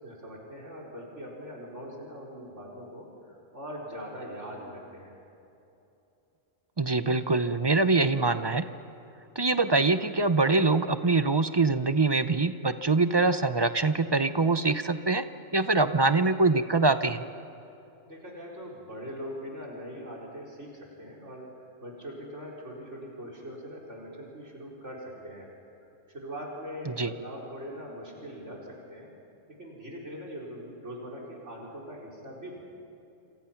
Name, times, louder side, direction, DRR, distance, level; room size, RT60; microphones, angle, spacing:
voice 1, 0.0-5.2 18.1-25.5 26.1-29.1 29.6-32.6, equal, 60° right, -1 dB, 4.8 m, -41 dB
voice 2, 6.8-8.6 9.4-15.2 15.5-17.2 26.9-27.1, right 3 dB, 30° right, 11 dB, 0.5 m, -24 dB
27.5 x 27.5 x 5.9 m, 2.8 s
omnidirectional pair, 1.4 m